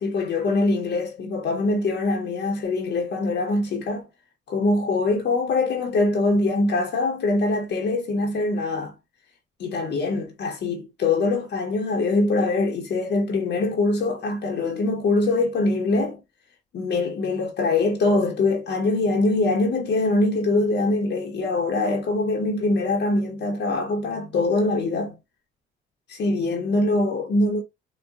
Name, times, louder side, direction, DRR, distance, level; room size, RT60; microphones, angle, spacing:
voice 1, 0.0-4.1 4.5-8.9 9.6-16.2 16.7-25.2 26.1-27.6, left 2 dB, 60° left, 0.9 m, -23 dB
3.9 x 2.2 x 2.3 m
cardioid pair, 90°, 20 cm